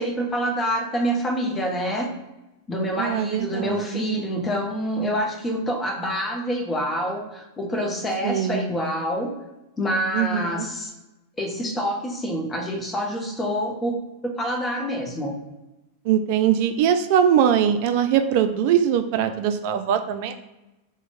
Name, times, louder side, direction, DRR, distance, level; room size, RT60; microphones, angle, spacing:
voice 1, 0.0-2.1 2.7-9.3 9.8-10.9 11.4-14.0 14.2-15.3, equal, 20° left, 1 dB, 0.8 m, -26 dB
voice 2, 3.0-4.1 8.2-8.7 10.1-10.6 16.1-20.3, right 9 dB, 50° right, 8 dB, 0.3 m, -21 dB
3.0 x 2.1 x 4.0 m, 1.0 s
figure-of-eight pair, 90°, 0 cm